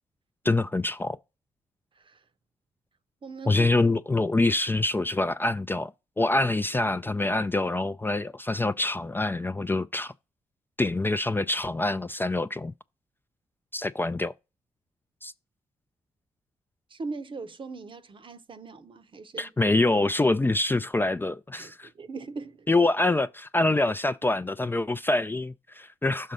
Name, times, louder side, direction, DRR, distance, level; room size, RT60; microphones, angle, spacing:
voice 1, 0.4-1.2 3.5-5.9 6.2-10.1 10.8-12.7 13.7-14.3 15.2-15.3 19.4-21.9 22.7-26.3, left 2 dB, 15° left, 0.4 m, -25 dB
voice 2, 3.2-3.7 16.9-19.5 21.6-22.7, right 3 dB, 45° right, 0.8 m, -40 dB
6.5 x 3.8 x 5.4 m
hypercardioid pair, 45°, 12 cm